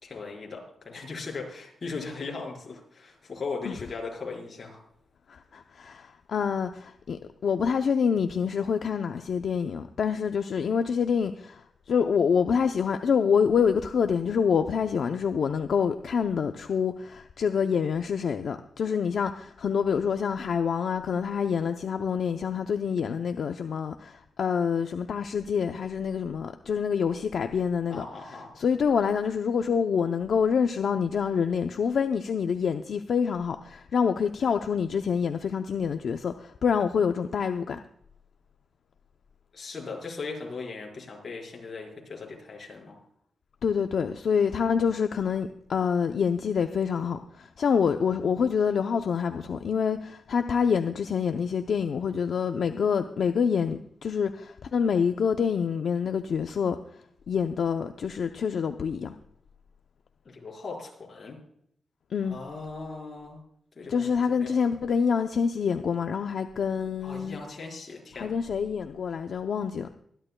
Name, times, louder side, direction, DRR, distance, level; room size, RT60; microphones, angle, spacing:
voice 1, 0.0-4.8 27.9-28.5 39.5-43.0 60.2-61.4 62.2-63.4 63.8-64.5 67.0-68.4, left 4 dB, 40° left, 4.6 m, -38 dB
voice 2, 5.3-37.8 43.6-56.8 57.3-59.1 62.1-62.4 63.9-67.4 68.1-69.9, left 6 dB, 65° left, 0.6 m, -26 dB
24.5 x 11.0 x 2.2 m
wide cardioid pair, 140°, 0 cm